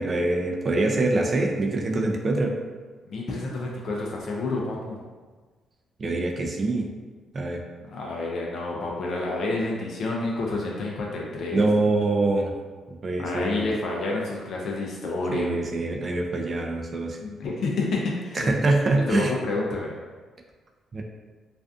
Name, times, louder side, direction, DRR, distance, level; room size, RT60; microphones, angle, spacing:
voice 1, 0.0-2.5 6.0-6.9 7.3-7.6 11.5-12.5 13.0-13.7 15.3-17.2 18.4-19.3 20.9-21.0, right 2 dB, 40° right, 1 dB, 0.4 m, -24 dB
voice 2, 3.1-5.0 7.9-11.6 13.2-15.5 17.2-18.5 19.1-20.0, left 2 dB, 65° left, -2 dB, 0.4 m, -29 dB
2.4 x 2.3 x 2.4 m, 1.4 s
cardioid pair, 90°, 0 cm